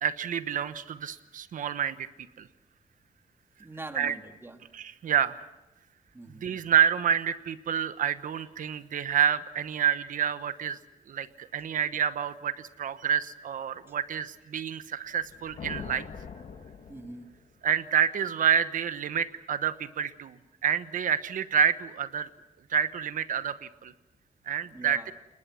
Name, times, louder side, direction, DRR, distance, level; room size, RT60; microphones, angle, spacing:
voice 1, 0.0-2.1 2.4-2.5 3.9-4.1 4.7-5.4 6.4-10.8 11.1-16.1 17.6-22.3 22.7-23.9 24.5-25.1, right 8 dB, 75° right, 12 dB, 1.1 m, -28 dB
voice 2, 3.6-4.6 6.1-6.5 16.9-17.3 24.7-25.1, right 2 dB, 15° right, 5 dB, 2.0 m, -43 dB
sound 1, 15.1-17.6, left 6 dB, 65° left, 1.7 m, -43 dB
29.0 x 19.5 x 6.3 m, 1.0 s
wide cardioid pair, 135°, 14 cm